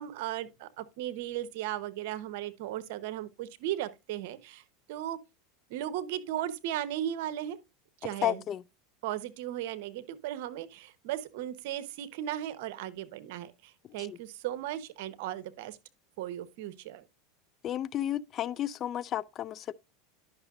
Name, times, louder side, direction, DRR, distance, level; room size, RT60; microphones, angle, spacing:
voice 1, 0.0-4.6 4.9-5.2 5.7-7.6 8.0-8.4 9.0-15.8 16.2-17.0, right 12 dB, 70° right, 0.8 m, -36 dB
voice 2, 8.2-8.6 14.1-14.2 17.6-19.7, left 11 dB, 40° left, 0.3 m, -32 dB
10.5 x 6.0 x 2.4 m
supercardioid pair, 115°, 0 cm